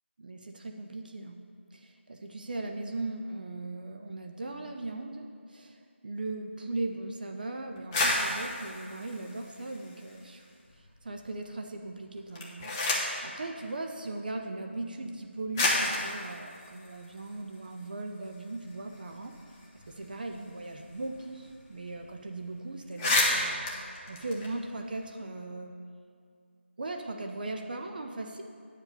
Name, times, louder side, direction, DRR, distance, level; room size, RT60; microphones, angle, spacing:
voice 1, 0.2-1.4 1.7-10.5 11.0-19.3 19.7-23.6 24.1-25.7 26.8-28.4, right 2 dB, 45° right, 3 dB, 0.6 m, -38 dB
sound 1, 7.8-10.3 10.7-11.4 12.2-13.3 14.3-14.4 15.1-15.2 15.5-17.9 18.2-18.3 18.6-21.2 21.5-21.6 21.9-22.1 22.5-22.6 22.8-25.0, left 2 dB, 15° left, 0.8 m, -31 dB
9.4 x 4.9 x 6.8 m, 2.2 s
figure-of-eight pair, 165°, 7 cm